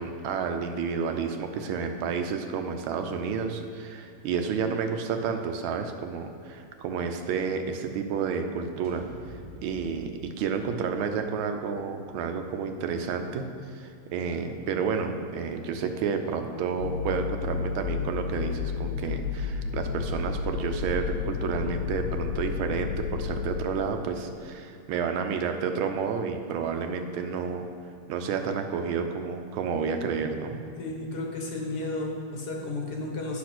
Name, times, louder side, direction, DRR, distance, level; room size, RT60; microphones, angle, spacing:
voice 1, 0.0-9.1 9.6-10.1 10.4-13.5 13.7-27.7 28.1-30.6, right 6 dB, 85° right, 6 dB, 1.5 m, -30 dB
sound 1, 8.8-13.1, equal, 45° right, 0.4 m, -49 dB
sound 2, 16.8-23.7, left 6 dB, 75° left, 1.2 m, -31 dB
voice 2, 30.8-33.4, left 2 dB, 55° left, -1 dB, 1.7 m, -33 dB
8.5 x 6.1 x 6.0 m, 2.6 s
omnidirectional pair, 2.2 m